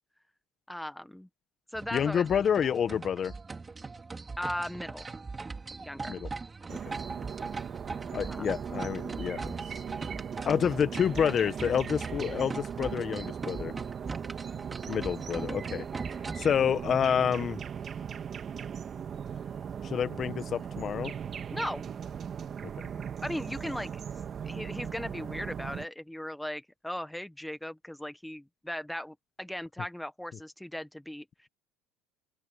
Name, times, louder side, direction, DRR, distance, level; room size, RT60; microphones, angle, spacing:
voice 1, 0.7-1.3 1.7-2.4 4.4-5.1 5.8-6.2 8.3-8.5 21.5-21.8 23.2-23.9 24.4-31.5, left 1 dB, 5° left, 1.2 m, -37 dB
sound 1, 1.7-16.6, right 4 dB, 20° right, 4.3 m, -41 dB
voice 2, 1.9-3.3 6.1-6.3 6.7-6.9 8.1-9.5 10.4-13.7 14.9-15.9 16.3-17.6 19.8-21.1 22.8-22.9, left 8 dB, 40° left, 1.6 m, -28 dB
sound 2, 6.7-25.9, right 7 dB, 40° right, 2.0 m, -38 dB
open air
supercardioid pair, 100°, 0 cm